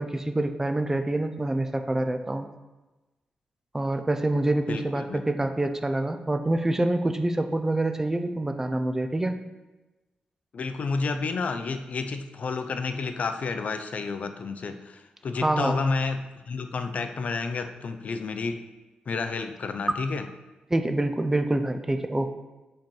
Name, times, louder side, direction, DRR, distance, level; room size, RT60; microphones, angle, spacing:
voice 1, 0.0-2.5 3.7-9.3 15.4-15.8 20.7-22.3, right 2 dB, 15° right, 7 dB, 0.5 m, -26 dB
voice 2, 4.7-5.2 10.5-18.6 19.1-20.2, left 4 dB, 55° left, 8 dB, 0.5 m, -30 dB
5.3 x 4.4 x 5.4 m, 1.1 s
cardioid pair, 105°, 3 cm